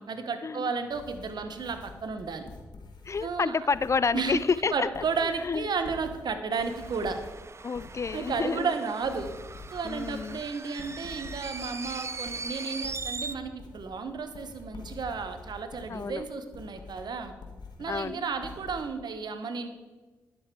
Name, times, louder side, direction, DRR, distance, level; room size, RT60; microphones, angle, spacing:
voice 1, 0.0-2.5 3.2-3.5 4.1-4.4 4.7-7.2 8.1-9.3 9.7-17.3 17.8-19.7, right 5 dB, 60° right, 8 dB, 1.1 m, -33 dB
sound 1, 0.9-18.8, left 4 dB, 60° left, 1.9 m, -47 dB
voice 2, 3.1-5.6 7.6-8.7 9.8-10.4 15.9-16.3 17.9-18.2, left 5 dB, 35° left, 18 dB, 0.3 m, -29 dB
sound 2, 6.5-13.4, right 4 dB, 35° right, 0.5 m, -40 dB
11.0 x 7.2 x 4.8 m, 1.3 s
hypercardioid pair, 40°, 8 cm